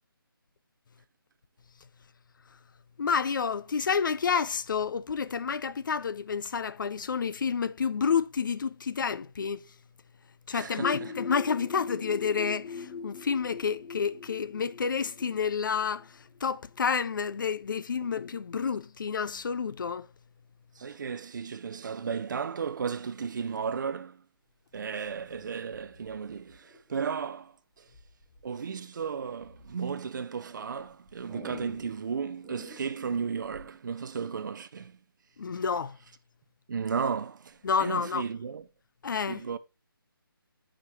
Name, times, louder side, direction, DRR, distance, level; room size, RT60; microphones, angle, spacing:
voice 1, 3.0-9.6 10.5-16.1 16.4-20.1 35.4-36.0 37.6-38.2 39.0-39.4, left 6 dB, 60° left, 0.4 m, -29 dB
voice 2, 10.5-11.1 18.0-18.1 20.8-24.2 24.7-27.8 28.4-35.0 36.7-38.7 39.3-39.6, right 6 dB, 55° right, 0.5 m, -34 dB
sound 1, 10.8-16.4, left 5 dB, 20° left, 0.6 m, -41 dB
sound 2, 25.0-26.9 27.9-28.4 28.9-29.8 30.3-33.8, equal, 5° right, 1.1 m, -49 dB
8.2 x 5.0 x 2.8 m
figure-of-eight pair, 160°, 12 cm